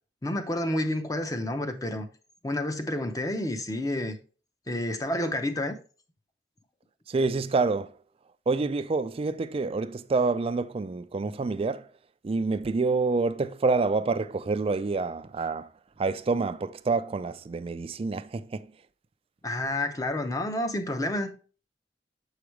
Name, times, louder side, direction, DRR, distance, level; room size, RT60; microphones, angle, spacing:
voice 1, 0.2-2.1 2.4-4.2 4.7-5.7 19.4-21.3, left 1 dB, 20° left, 0.7 m, -29 dB
voice 2, 7.1-7.9 8.5-11.9 12.2-15.7 16.0-18.7, right 3 dB, 35° right, 0.4 m, -27 dB
7.0 x 4.9 x 3.1 m
head